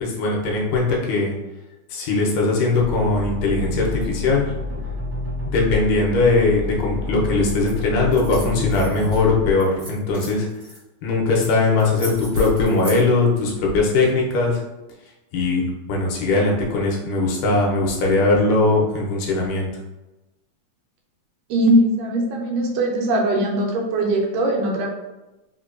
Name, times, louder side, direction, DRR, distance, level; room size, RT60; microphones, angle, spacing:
voice 1, 0.0-1.4 1.9-4.5 5.5-10.5 11.0-14.6 15.3-15.6 15.9-19.7, left 3 dB, 80° left, -2 dB, 2.3 m, -20 dB
sound 1, 2.8-9.5, left 2 dB, 65° left, 0.4 m, -29 dB
sound 2, 7.6-7.8 8.1-9.2 9.6-10.8 11.4-11.5 11.8-13.0, equal, 70° right, 0.6 m, -38 dB
voice 2, 21.5-24.9, right 1 dB, 85° right, -1 dB, 2.1 m, -20 dB
5.3 x 2.2 x 2.4 m, 1.0 s
omnidirectional pair, 3.7 m